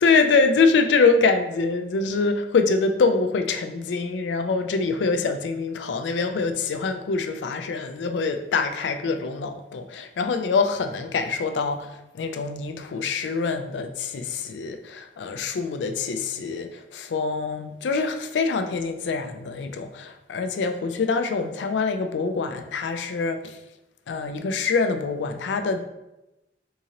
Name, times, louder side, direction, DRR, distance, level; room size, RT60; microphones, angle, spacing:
voice 1, 0.0-23.6 24.1-25.9, left 4 dB, 85° left, 8 dB, 0.4 m, -24 dB
3.6 x 2.8 x 2.8 m, 0.93 s
head